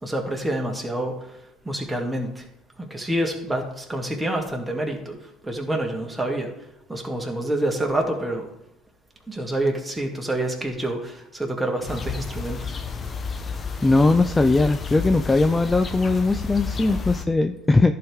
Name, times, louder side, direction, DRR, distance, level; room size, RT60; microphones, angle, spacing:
voice 1, 0.0-1.2 1.6-2.4 2.8-5.2 5.4-6.5 6.9-8.5 9.3-12.8, right 1 dB, 10° right, 1 dB, 2.3 m, -27 dB
sound 1, 11.9-17.3, left 5 dB, 35° left, 1.0 m, -31 dB
voice 2, 13.8-17.9, left 2 dB, 15° left, 8 dB, 0.5 m, -19 dB
14.0 x 4.8 x 3.6 m, 0.82 s
hypercardioid pair, 60°, 0 cm